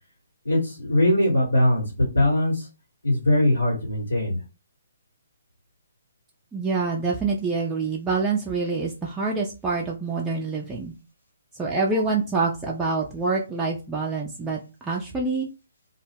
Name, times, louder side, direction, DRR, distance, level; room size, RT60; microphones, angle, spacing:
voice 1, 0.4-1.8 2.1-2.7 3.0-4.4, left 1 dB, 85° left, -5 dB, 1.1 m, -21 dB
voice 2, 6.5-10.9 11.6-15.5, right 4 dB, 10° right, -4 dB, 0.4 m, -26 dB
2.2 x 2.0 x 3.3 m, 0.30 s
figure-of-eight pair, 135°, 0 cm